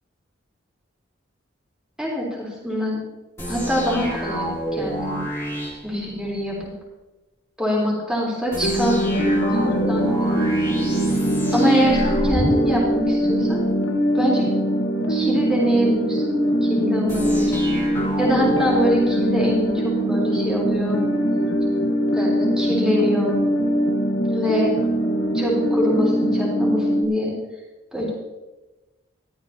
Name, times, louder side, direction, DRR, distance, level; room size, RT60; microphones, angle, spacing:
voice 1, 2.0-3.0 3.5-5.2 5.8-6.6 7.6-10.4 11.5-13.7 14.1-14.5 15.1-17.6 18.2-21.0 22.1-23.4 24.3-24.8 25.3-27.3 27.9-28.1, equal, 5° right, -6 dB, 3.8 m, -24 dB
sound 1, 3.4-6.7 8.5-13.7 17.1-19.7, equal, 15° left, 2.6 m, -29 dB
sound 2, 8.6-27.0, equal, 75° left, 1.3 m, -22 dB
14.5 x 13.0 x 2.9 m, 1.1 s
head